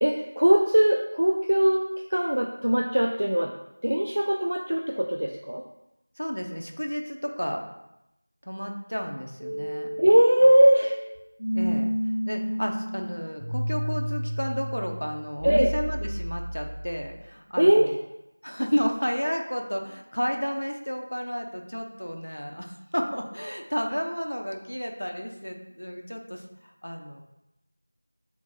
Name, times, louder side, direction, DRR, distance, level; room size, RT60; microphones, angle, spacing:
voice 1, 0.0-1.8 2.1-3.5 3.8-5.6 10.0-10.9 15.4-15.7 17.6-17.9, right 1 dB, 45° right, 1 dB, 0.3 m, -20 dB
voice 2, 6.2-7.6 8.4-9.9 11.5-11.9 12.3-18.0 18.4-27.2, equal, 85° left, 2 dB, 0.7 m, -32 dB
sound 1, 9.4-17.3, equal, 80° right, 0.6 m, -31 dB
4.7 x 3.5 x 2.7 m, 0.89 s
figure-of-eight pair, 175°, 0 cm